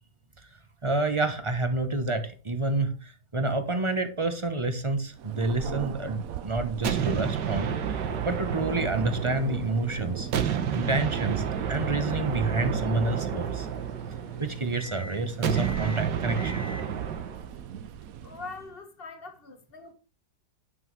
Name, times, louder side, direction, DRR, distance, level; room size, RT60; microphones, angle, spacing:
voice 1, 0.8-10.3 10.7-13.7 14.4-16.7, right 2 dB, 25° right, 0.8 m, -29 dB
Thunder, 5.1-18.8, right 10 dB, 65° right, 1.0 m, -40 dB
sound 1, 6.8-9.9 10.3-14.6 15.4-17.5, right 8 dB, 85° right, 1.7 m, -30 dB
sound 2, 8.3-18.6, right 5 dB, 20° left, 1.9 m, -43 dB
voice 2, 18.2-19.9, left 3 dB, 35° left, 1.5 m, -42 dB
10.0 x 6.0 x 4.7 m
omnidirectional pair, 1.8 m